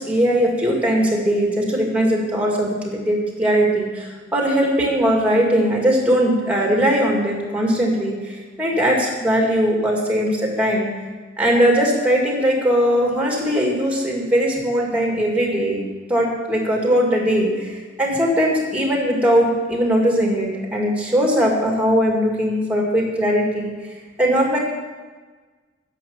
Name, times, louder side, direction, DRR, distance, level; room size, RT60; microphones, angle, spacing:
voice 1, 0.0-8.2 8.6-10.9 11.4-15.8 16.1-23.7 24.2-24.6, equal, 10° right, -1 dB, 2.2 m, -19 dB
10.5 x 6.9 x 7.0 m, 1.4 s
head